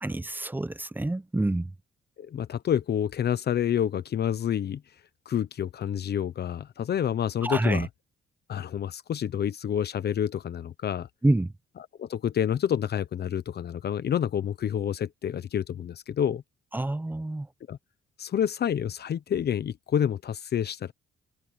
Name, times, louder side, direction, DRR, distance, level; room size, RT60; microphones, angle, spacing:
voice 1, 0.0-1.7 7.4-7.9 11.2-11.5 16.7-17.5, right 2 dB, 10° right, 0.7 m, -27 dB
voice 2, 2.2-4.8 5.3-7.9 8.5-11.1 12.0-16.4 17.7-17.8 18.2-20.9, left 9 dB, 55° left, 1.0 m, -28 dB
open air
cardioid pair, 90°, 20 cm